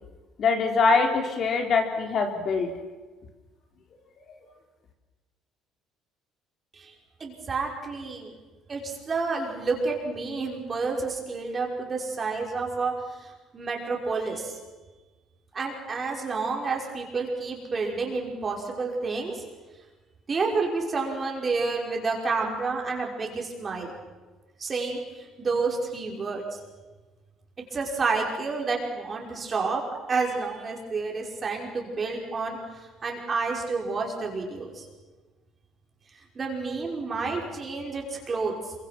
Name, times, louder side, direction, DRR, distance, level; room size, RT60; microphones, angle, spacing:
voice 1, 0.4-2.7 4.3-4.4, left 4 dB, 45° left, 3 dB, 3.8 m, -23 dB
voice 2, 7.2-8.3 8.7-14.6 15.5-19.4 20.3-23.9 24.6-26.6 27.7-29.8 30.1-34.9 36.4-38.7, right 4 dB, 30° right, 0 dB, 5.6 m, -30 dB
27.5 x 24.5 x 6.1 m, 1.3 s
cardioid pair, 130°, 0 cm